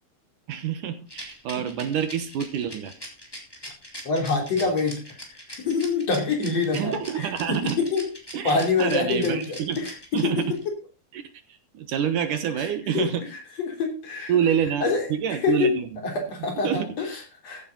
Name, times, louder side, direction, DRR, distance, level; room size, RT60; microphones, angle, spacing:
voice 1, 0.5-2.9 6.7-7.8 8.3-9.8 10.1-10.5 11.1-11.2 11.7-13.2 14.3-16.0 16.6-16.9, right 8 dB, 70° right, 10 dB, 2.6 m, -27 dB
Rattle, 1.1-10.6, equal, 5° left, 3.5 m, -41 dB
voice 2, 4.0-5.2 5.5-8.1 8.4-10.7 12.6-14.3 14.8-15.1 15.4-15.7 16.0-17.7, left 4 dB, 45° left, 3 dB, 4.4 m, -26 dB
15.5 x 9.8 x 4.0 m, 0.32 s
omnidirectional pair, 4.1 m